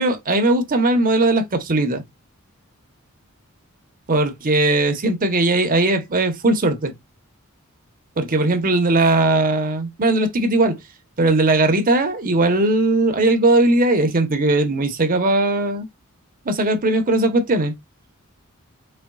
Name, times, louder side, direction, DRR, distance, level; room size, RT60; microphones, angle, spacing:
voice 1, 0.0-2.0 4.1-6.9 8.2-10.8 11.2-15.9 16.4-17.7, right 2 dB, 40° right, 0.9 m, -18 dB
4.3 x 3.3 x 2.3 m
head